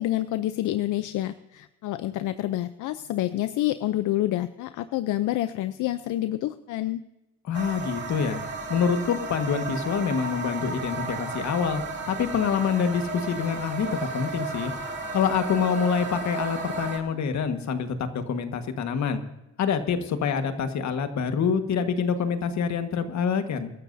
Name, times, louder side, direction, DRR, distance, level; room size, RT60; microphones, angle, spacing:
voice 1, 0.0-7.0, left 14 dB, 85° left, 12 dB, 0.6 m, -28 dB
voice 2, 7.4-8.4 8.7-11.8 12.1-13.9 14.1-14.7 15.1-19.2 19.6-23.7, left 6 dB, 65° left, 8 dB, 1.6 m, -26 dB
sound 1, 7.5-17.0, right 3 dB, 35° right, 2.4 m, -33 dB
25.0 x 12.5 x 2.7 m, 0.99 s
cardioid pair, 90°, 30 cm